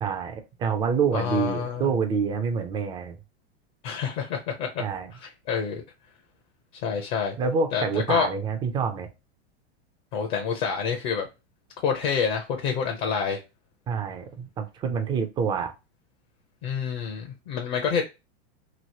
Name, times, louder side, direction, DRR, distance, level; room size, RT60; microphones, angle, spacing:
voice 1, 0.0-3.2 4.8-5.1 7.4-9.1 13.9-15.7, right 5 dB, 15° right, 0.3 m, -27 dB
voice 2, 1.1-1.9 3.8-4.8 5.1-5.8 6.8-7.4 7.7-8.3 10.1-11.3 11.8-13.4 16.6-18.0, left 6 dB, 50° left, 0.8 m, -27 dB
3.1 x 2.8 x 2.8 m
supercardioid pair, 150°, 32 cm